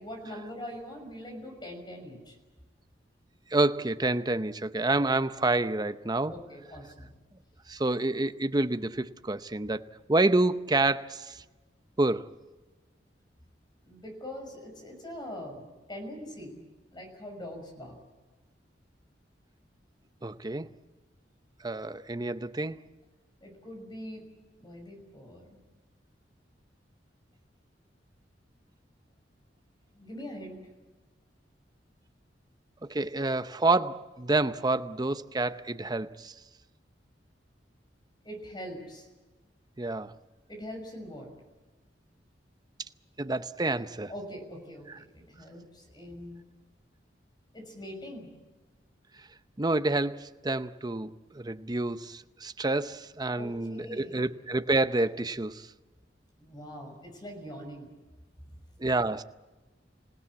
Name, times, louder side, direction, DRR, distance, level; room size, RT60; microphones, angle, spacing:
voice 1, 0.0-2.4 6.3-7.1 13.8-16.6 16.9-18.0 23.4-24.2 24.6-25.6 29.9-30.6 38.2-39.1 40.5-41.3 44.1-46.4 47.5-48.3 53.3-54.2 56.4-57.9, equal, 25° left, 6.1 m, -42 dB
voice 2, 3.5-6.3 7.7-11.4 12.0-12.3 20.2-20.7 21.6-22.8 32.9-36.3 39.8-40.1 43.2-44.1 49.6-55.7 58.8-59.2, right 2 dB, 20° right, 0.7 m, -28 dB
26.5 x 17.0 x 8.5 m
head